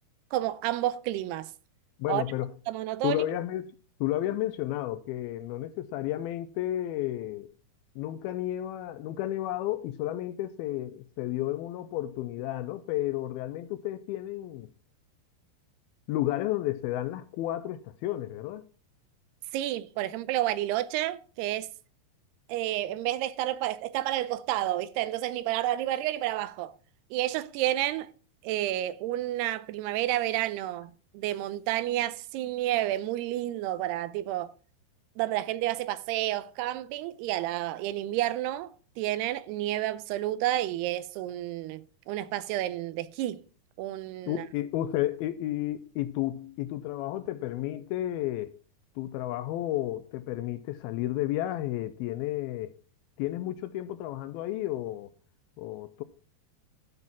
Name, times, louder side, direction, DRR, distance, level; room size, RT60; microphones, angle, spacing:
voice 1, 0.3-1.5 2.1-2.2 2.7-3.2 19.5-21.7 22.5-26.7 27.1-28.1 28.4-34.5 35.2-43.4 43.8-44.4, right 14 dB, 85° right, 2.6 m, -30 dB
voice 2, 2.0-2.5 3.0-3.7 4.0-7.5 8.0-14.7 16.1-18.7 44.3-48.5 49.0-52.7 53.2-55.1 55.6-56.0, left 14 dB, 80° left, 2.3 m, -32 dB
12.0 x 5.5 x 5.9 m
omnidirectional pair, 4.7 m